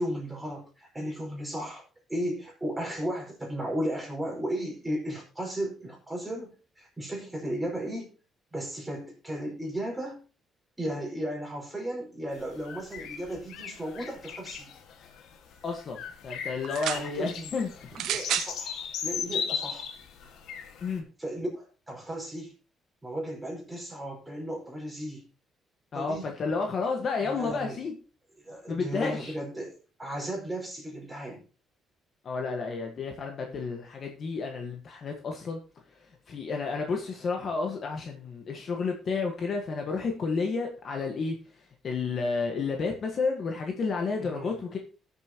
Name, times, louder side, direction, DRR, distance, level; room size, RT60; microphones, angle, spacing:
voice 1, 0.0-1.8 2.1-8.1 8.5-10.2 10.8-14.7 16.9-17.6 17.9-19.9 21.2-22.5 23.0-25.3 25.9-26.2 27.2-27.8 28.4-29.7 30.0-31.4 44.2-44.6, equal, 10° right, -2 dB, 4.9 m, -35 dB
sound 1, 12.4-21.0, left 7 dB, 75° left, 1.8 m, -37 dB
voice 2, 15.6-17.7 20.8-21.0 25.9-27.9 28.7-29.3 32.2-35.6 36.3-41.4 41.8-44.8, left 4 dB, 40° left, 2 dB, 1.6 m, -31 dB
sound 2, 16.6-17.1 17.9-18.5 19.4-19.5, right 11 dB, 80° right, 0.7 m, -30 dB
19.0 x 7.0 x 3.0 m, 0.36 s
cardioid pair, 165°, 0 cm